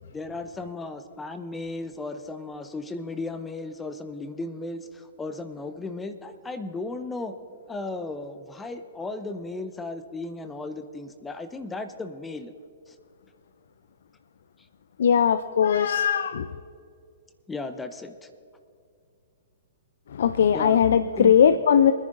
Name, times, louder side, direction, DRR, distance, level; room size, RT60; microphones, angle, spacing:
voice 1, 0.1-7.3 7.7-12.5 12.9-13.0 17.5-18.3 20.5-21.3, left 2 dB, 10° left, 9 dB, 0.6 m, -35 dB
voice 2, 15.0-16.5 20.1-21.9, left 8 dB, 60° left, 12 dB, 0.4 m, -19 dB
24.0 x 10.5 x 2.6 m, 2.4 s
figure-of-eight pair, 115°, 0 cm